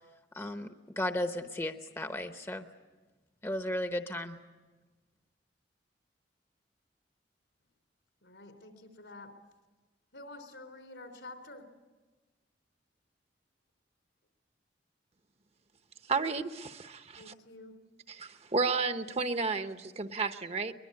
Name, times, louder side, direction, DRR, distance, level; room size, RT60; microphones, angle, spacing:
voice 1, 0.3-2.7 3.4-4.4, left 1 dB, 15° left, 7 dB, 0.9 m, -35 dB
voice 2, 8.2-9.3 10.1-11.7 17.2-17.8, left 2 dB, 75° left, 6 dB, 3.7 m, -49 dB
voice 3, 16.1-17.3 18.1-20.7, right 4 dB, 35° right, 9 dB, 0.9 m, -32 dB
22.5 x 21.5 x 9.7 m, 1.2 s
head